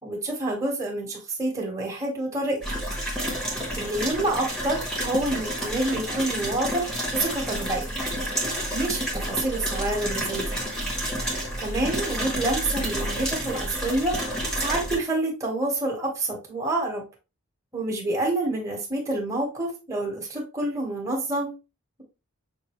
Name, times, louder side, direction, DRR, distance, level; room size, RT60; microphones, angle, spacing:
voice 1, 0.0-2.8 3.4-7.9 8.7-10.6 11.6-14.2 14.6-17.0 17.7-21.5, right 2 dB, 15° right, -2 dB, 1.3 m, -28 dB
sound 1, 2.6-15.0, equal, 5° left, 1.1 m, -30 dB
5.9 x 2.7 x 3.0 m, 0.28 s
head